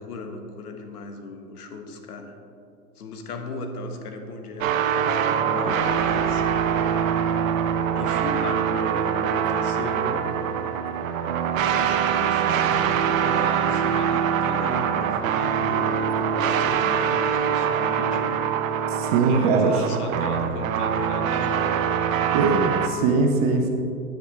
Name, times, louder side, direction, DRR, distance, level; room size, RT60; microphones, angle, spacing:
voice 1, 0.0-2.3 3.0-5.2 5.5-6.4 7.9-10.5 11.7-18.4 19.1-22.0, left 3 dB, 70° left, 5 dB, 1.4 m, -36 dB
sound 1, 4.6-22.9, right 8 dB, 55° right, 0.8 m, -24 dB
voice 2, 18.9-19.9 22.3-23.7, right 4 dB, 25° right, 4 dB, 0.5 m, -21 dB
10.0 x 9.8 x 3.3 m, 2.5 s
hypercardioid pair, 130°, 48 cm